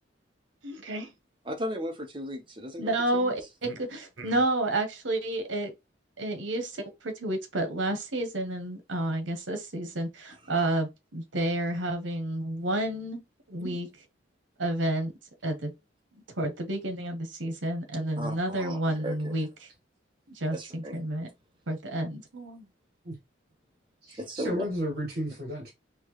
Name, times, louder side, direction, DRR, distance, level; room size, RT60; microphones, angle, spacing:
voice 1, 0.6-1.1 2.8-5.7 6.2-6.7 7.0-13.2 13.5-13.9 14.6-15.1 15.4-15.7 16.4-19.5 20.4-21.3 21.7-22.6, right 1 dB, 70° right, 1.1 m, -30 dB
voice 2, 1.4-3.3 10.3-10.5 18.2-19.5 20.5-21.0 24.2-24.7, equal, 25° right, 0.9 m, -36 dB
voice 3, 24.0-25.7, equal, 50° right, 1.5 m, -33 dB
4.4 x 3.1 x 3.1 m
head